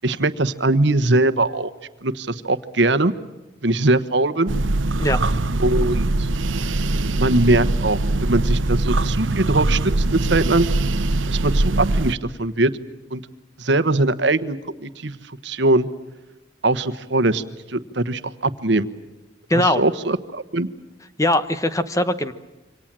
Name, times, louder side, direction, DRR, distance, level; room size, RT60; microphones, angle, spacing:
voice 1, 0.0-1.7 2.0-3.1 3.6-4.5 5.6-6.3 7.1-10.7 11.3-12.7 13.1-13.2 13.6-15.2 15.4-15.9 16.6-17.4 17.7-18.9 19.5-20.7, right 2 dB, 65° right, 12 dB, 1.2 m, -21 dB
sound 1, 4.5-12.1, right 2 dB, 80° right, 0.9 m, -22 dB
voice 2, 19.5-19.8 21.2-22.3, left 1 dB, 15° left, 11 dB, 1.0 m, -20 dB
27.0 x 25.0 x 7.5 m, 1.1 s
head